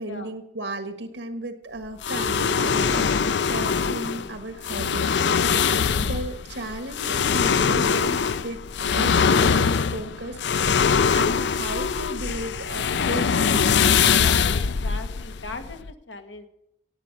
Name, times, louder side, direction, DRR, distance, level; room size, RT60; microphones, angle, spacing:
voice 1, 0.0-3.1 3.5-10.7 11.1-13.7, right 1 dB, 85° right, 7 dB, 1.4 m, -35 dB
sound 1, 2.0-15.9, left 6 dB, 70° left, 0.5 m, -22 dB
voice 2, 14.0-16.5, left 3 dB, 90° left, 6 dB, 1.7 m, -37 dB
16.5 x 8.6 x 5.3 m, 0.84 s
head